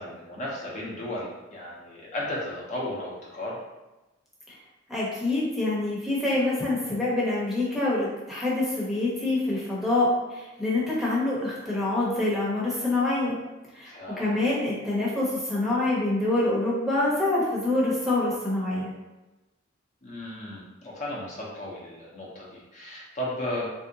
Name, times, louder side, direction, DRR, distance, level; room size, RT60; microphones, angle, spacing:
voice 1, 0.0-3.6 13.9-14.4 20.0-23.7, left 1 dB, 40° left, -5 dB, 0.7 m, -35 dB
voice 2, 4.9-13.4 13.7-18.9, left 2 dB, ahead, -7 dB, 0.8 m, -26 dB
3.3 x 2.7 x 2.7 m, 1.1 s
head